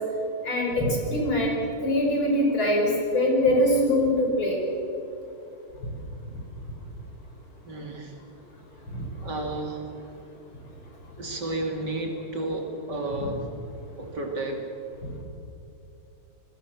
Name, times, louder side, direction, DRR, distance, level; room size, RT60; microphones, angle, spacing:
voice 1, 0.4-1.6 1.8-4.6 8.9-9.1, left 1 dB, 65° left, 0 dB, 6.1 m, -23 dB
voice 2, 7.7-8.2 9.2-9.9 11.2-13.5 14.0-14.6, right 2 dB, 50° right, 1 dB, 3.4 m, -32 dB
27.0 x 21.0 x 7.3 m, 2.7 s
omnidirectional pair, 2.4 m